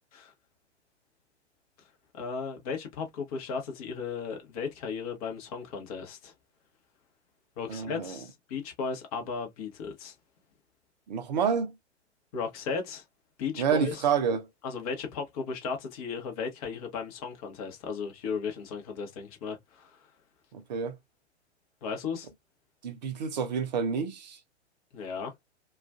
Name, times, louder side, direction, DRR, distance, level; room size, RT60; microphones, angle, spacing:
voice 1, 2.1-6.3 7.6-10.1 12.3-13.0 13.4-14.0 14.6-20.0 21.8-22.3 24.9-25.3, left 5 dB, 35° left, 0.9 m, -35 dB
voice 2, 7.7-8.2 11.1-11.7 13.6-14.5 20.5-21.0 22.8-24.4, right 6 dB, 40° right, 0.6 m, -28 dB
2.4 x 2.3 x 2.4 m
figure-of-eight pair, 110°, 34 cm